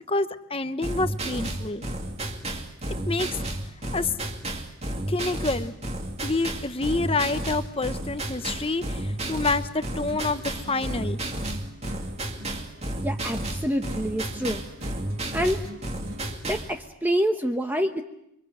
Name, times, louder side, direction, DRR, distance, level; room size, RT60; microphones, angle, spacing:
voice 1, 0.1-1.8 3.0-3.3 3.9-4.1 5.1-5.7 6.2-11.2, left 3 dB, 25° left, 11 dB, 1.0 m, -27 dB
sound 1, 0.8-16.7, right 1 dB, 30° right, 2.3 m, -32 dB
sound 2, 8.4-16.4, right 1 dB, 70° right, 3.0 m, -45 dB
voice 2, 13.0-14.6 15.3-15.6 16.4-18.0, equal, 10° right, 5 dB, 1.1 m, -26 dB
29.5 x 24.0 x 7.9 m, 0.78 s
head